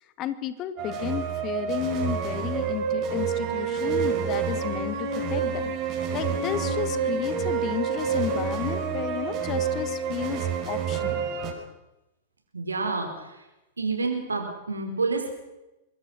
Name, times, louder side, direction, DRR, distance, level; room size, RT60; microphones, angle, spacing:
voice 1, 0.2-5.7 6.1-11.3, left 11 dB, 35° left, 11 dB, 2.1 m, -33 dB
sound 1, 0.8-11.5, right 6 dB, 35° right, 5.8 m, -28 dB
voice 2, 12.5-13.4 13.8-15.3, right 3 dB, 85° right, 4 dB, 4.8 m, -29 dB
25.5 x 21.5 x 6.2 m, 0.98 s
figure-of-eight pair, 105°, 0 cm